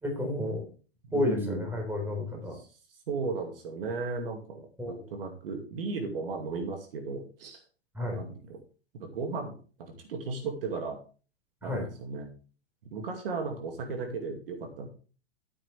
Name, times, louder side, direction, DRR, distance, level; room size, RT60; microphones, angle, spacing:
voice 1, 0.0-0.7 1.1-2.6 4.8-5.1 7.9-8.2 11.6-11.9, left 1 dB, 5° right, 1 dB, 4.2 m, -31 dB
voice 2, 1.1-1.7 2.5-2.7 3.1-7.6 8.1-8.6 8.9-11.0 11.6-12.3 12.8-14.9, right 4 dB, 60° right, 4 dB, 2.4 m, -35 dB
11.5 x 9.3 x 3.4 m, 0.37 s
figure-of-eight pair, 105°, 32 cm